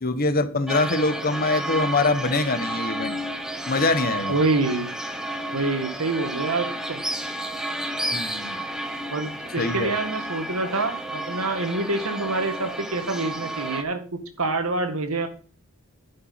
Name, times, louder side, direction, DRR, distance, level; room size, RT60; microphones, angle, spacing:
voice 1, 0.0-3.2 3.7-4.4 8.1-8.6 9.6-9.9, left 3 dB, 45° left, 1.2 m, -24 dB
sound 1, 0.7-13.8, right 1 dB, 5° right, 1.1 m, -31 dB
voice 2, 4.3-4.9 5.5-7.0 9.1-15.3, right 3 dB, 75° right, 1.9 m, -26 dB
11.5 x 5.8 x 5.8 m
head